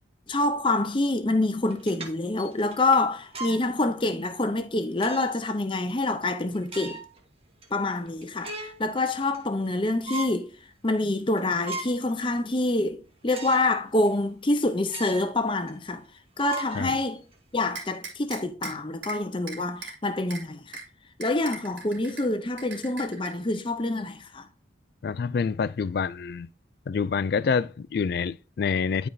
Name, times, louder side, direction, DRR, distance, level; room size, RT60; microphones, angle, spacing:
voice 1, 0.3-7.0 7.7-10.5 10.8-16.0 16.4-17.2 17.5-20.8 21.2-24.5, left 2 dB, 25° left, 0.7 m, -26 dB
sound 1, 1.6-3.7 4.2-4.3 5.0-5.5 5.9-6.0 6.5-7.2 7.6-7.7 8.1-8.8 9.2-9.7 10.0-10.4 10.9-11.0 11.4-12.1 12.5-12.6 13.3-13.7 14.1-14.2 14.9-15.4 15.7-15.8 16.4-17.4, right 2 dB, 30° right, 1.3 m, -38 dB
sound 2, 17.7-18.7 19.0-19.2 19.5-19.9 20.3-20.4 20.7-20.8 21.2-22.2 22.6-23.3, right 4 dB, 80° right, 2.8 m, -38 dB
voice 2, 25.0-26.5 26.9-29.1, left 5 dB, 55° left, 0.3 m, -27 dB
10.5 x 4.6 x 2.7 m
head